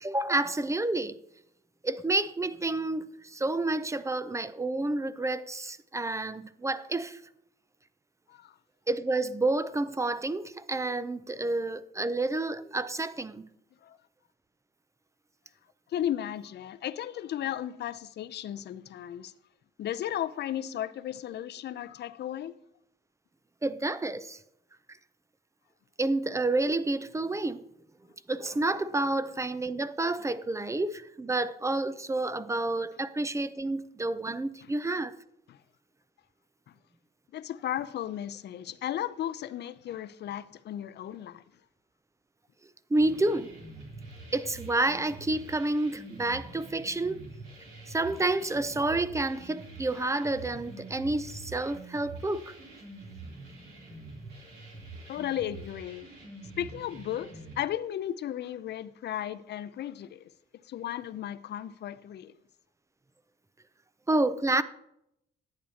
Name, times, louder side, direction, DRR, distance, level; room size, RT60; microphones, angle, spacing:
voice 1, 0.0-1.1 1.8-7.2 8.9-13.5 23.6-24.4 26.0-27.6 28.3-35.2 42.9-43.5 44.3-47.2 47.9-52.5 64.1-64.6, right 2 dB, 15° right, 0.4 m, -29 dB
voice 2, 15.9-19.3 19.8-22.6 34.6-34.7 35.5-35.6 37.3-41.4 55.1-56.1 56.6-57.3 57.6-60.3 60.6-62.3, left 11 dB, 60° left, 0.5 m, -35 dB
sound 1, 42.9-57.6, right 2 dB, 90° right, 3.1 m, -46 dB
11.0 x 8.5 x 2.8 m
cardioid pair, 90°, 20 cm